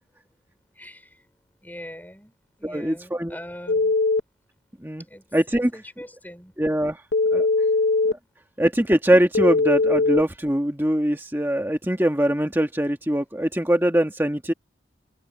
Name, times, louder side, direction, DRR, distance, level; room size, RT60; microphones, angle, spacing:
voice 1, 0.7-1.2 1.6-4.0 5.0-6.5 7.6-7.7, equal, 10° left, 5.3 m, -42 dB
voice 2, 2.6-3.4 4.8-5.1 5.3-5.7 6.6-7.0 7.3-7.5 8.1-8.2 8.6-14.5, equal, 10° right, 1.7 m, -22 dB
Telephone, 3.7-4.2 7.1-8.1 9.3-10.2, left 3 dB, 90° left, 0.9 m, -20 dB
head